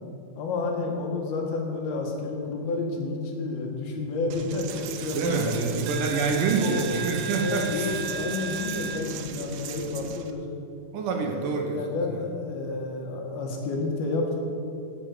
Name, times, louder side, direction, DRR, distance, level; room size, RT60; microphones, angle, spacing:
voice 1, 0.4-5.6 6.5-7.0 7.4-10.5 11.2-14.4, left 3 dB, 75° left, 1 dB, 3.6 m, -30 dB
Coin (dropping), 4.3-10.3, right 6 dB, 90° right, 2.8 m, -35 dB
voice 2, 5.1-7.9 10.9-11.8 12.1-12.2, right 4 dB, 65° right, 2 dB, 2.4 m, -27 dB
16.5 x 7.5 x 6.7 m, 2.7 s
omnidirectional pair, 4.4 m